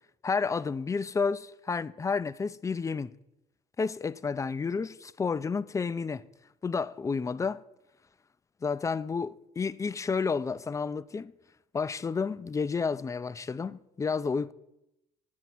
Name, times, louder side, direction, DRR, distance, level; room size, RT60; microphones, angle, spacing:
voice 1, 0.2-3.1 3.8-6.2 6.6-7.6 8.6-11.3 11.7-14.5, left 5 dB, 20° left, 0.4 m, -31 dB
7.8 x 7.0 x 5.9 m
hypercardioid pair, 65°, 17 cm